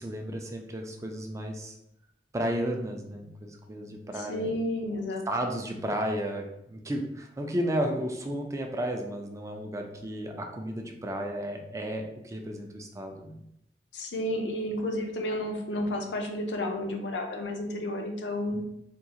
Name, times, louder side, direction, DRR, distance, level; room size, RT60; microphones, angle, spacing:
voice 1, 0.0-1.8 2.3-4.5 5.3-13.4 15.7-15.8 18.5-18.6, right 1 dB, 20° right, 3 dB, 0.4 m, -33 dB
voice 2, 4.1-5.3 13.9-18.6, left 1 dB, 85° left, 3 dB, 0.6 m, -31 dB
3.6 x 2.4 x 2.8 m, 0.79 s
head